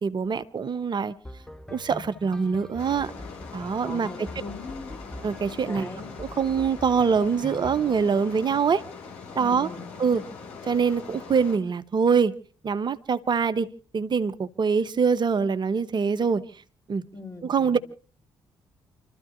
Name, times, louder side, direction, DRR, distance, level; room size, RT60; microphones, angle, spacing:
voice 1, 0.0-1.1 1.7-3.1 3.5-4.3 5.2-5.9 6.2-8.8 9.3-9.7 10.0-10.2 10.6-12.3 12.6-13.7 13.9-16.4 16.9-17.0 17.4-17.8, right 6 dB, 40° right, 1.1 m, -24 dB
sound 1, 1.2-8.0, left 1 dB, 5° left, 1.3 m, -43 dB
sound 2, 2.8-11.6, left 5 dB, 65° left, 4.6 m, -42 dB
voice 2, 3.8-4.9 5.6-6.1 9.4-10.2 17.1-17.8, left 3 dB, 25° left, 4.0 m, -40 dB
29.5 x 13.5 x 2.7 m
figure-of-eight pair, 40°, 12 cm